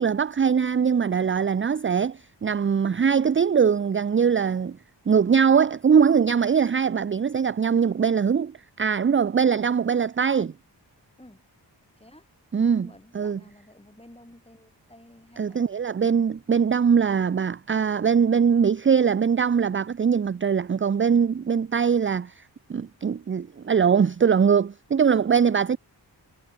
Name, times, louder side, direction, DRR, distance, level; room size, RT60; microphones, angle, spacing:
voice 1, 0.0-4.8 5.1-10.5 12.5-12.9 13.1-13.4 15.4-22.4 22.7-25.8, right 6 dB, 30° right, 0.4 m, -22 dB
voice 2, 12.0-12.3 12.6-15.6, left 1 dB, 15° left, 7.5 m, -51 dB
wide cardioid pair, 65°, 44 cm